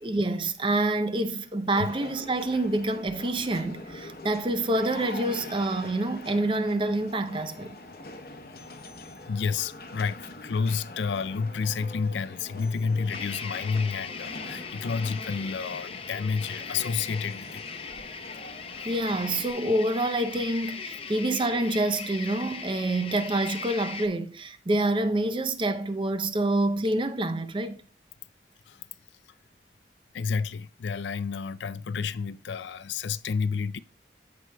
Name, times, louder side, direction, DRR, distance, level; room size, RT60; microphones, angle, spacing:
voice 1, 0.0-7.8 18.8-27.8, right 2 dB, 30° right, 0.6 m, -27 dB
sound 1, 1.8-19.5, left 2 dB, 55° left, 0.9 m, -44 dB
voice 2, 9.3-17.6 28.7-28.9 30.1-33.8, left 5 dB, 85° left, 0.4 m, -30 dB
sound 2, 13.1-24.1, left 5 dB, 30° left, 0.6 m, -39 dB
13.5 x 4.7 x 2.2 m
head